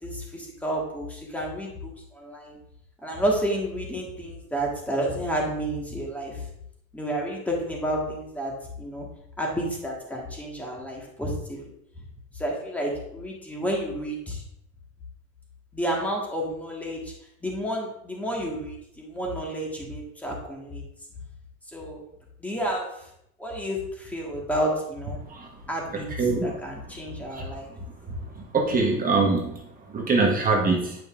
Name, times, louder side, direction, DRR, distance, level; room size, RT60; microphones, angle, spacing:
voice 1, 0.0-2.6 3.0-6.5 6.9-8.5 8.8-9.1 9.4-11.6 12.3-14.4 15.7-17.1 17.4-20.8 21.7-22.0 22.4-23.1 23.4-25.2 25.7-27.7, right 1 dB, 5° left, -2 dB, 1.5 m, -30 dB
voice 2, 26.2-26.5 27.3-27.5 28.5-29.6 29.9-31.0, right 3 dB, 20° right, -1 dB, 1.1 m, -23 dB
9.0 x 5.3 x 2.5 m, 0.75 s
supercardioid pair, 140°, 40 cm